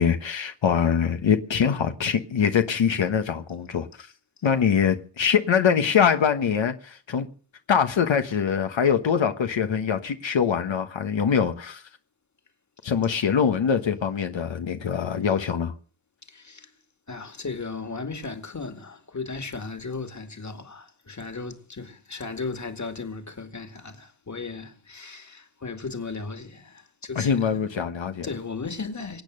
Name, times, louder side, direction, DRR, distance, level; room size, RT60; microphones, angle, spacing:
voice 1, 0.0-4.1 4.4-7.3 7.7-11.8 12.8-15.7 27.2-28.3, left 7 dB, 80° left, 1.3 m, -23 dB
voice 2, 16.3-16.7 17.1-27.7 28.2-29.2, left 4 dB, 40° left, 2.3 m, -36 dB
24.0 x 8.8 x 6.6 m
wide cardioid pair, 85°, 45 cm